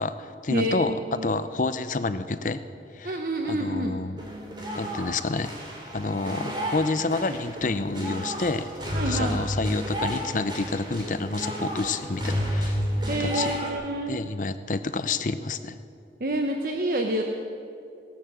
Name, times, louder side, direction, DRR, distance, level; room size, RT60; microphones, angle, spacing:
voice 1, 0.0-0.9 1.2-2.6 2.9-3.2 3.5-4.2 4.7-5.5 5.9-8.7 9.1-12.8 13.1-13.6 14.1-15.8, left 3 dB, 45° left, 12 dB, 0.6 m, -29 dB
voice 2, 0.5-1.3 3.0-4.0 8.9-9.4 13.1-14.2 16.2-17.2, right 1 dB, 50° right, 3 dB, 0.9 m, -28 dB
sound 1, 4.2-13.7, equal, 25° right, 2.8 m, -31 dB
16.5 x 11.5 x 7.5 m, 2.6 s
head